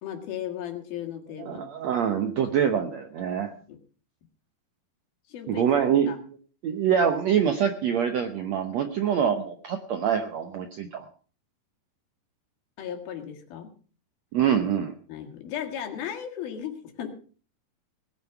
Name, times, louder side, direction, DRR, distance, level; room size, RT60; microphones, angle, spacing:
voice 1, 0.0-1.8 3.7-3.8 5.3-6.2 12.8-13.7 15.1-17.1, left 9 dB, 70° left, 4 dB, 3.7 m, -36 dB
voice 2, 1.5-3.5 5.5-6.3 6.6-11.0 14.3-14.9, right 8 dB, 70° right, 7 dB, 1.6 m, -25 dB
19.5 x 9.3 x 5.9 m, 0.40 s
omnidirectional pair, 4.5 m